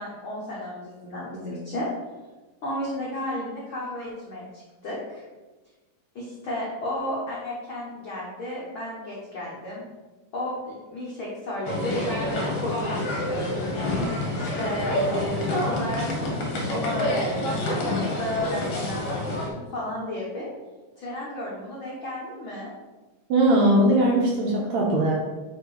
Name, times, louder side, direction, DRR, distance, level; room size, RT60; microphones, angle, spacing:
voice 1, 0.0-1.9 2.6-5.2 6.1-9.8 10.3-13.8 14.3-17.8 18.1-19.2 19.5-20.5 21.0-22.7, left 1 dB, 70° left, -6 dB, 1.2 m, -33 dB
sound 1, 11.7-19.5, left 1 dB, 55° left, 1.9 m, -27 dB
voice 2, 23.3-25.1, right 1 dB, 70° right, -2 dB, 1.8 m, -20 dB
5.5 x 4.4 x 4.8 m, 1.2 s
omnidirectional pair, 4.0 m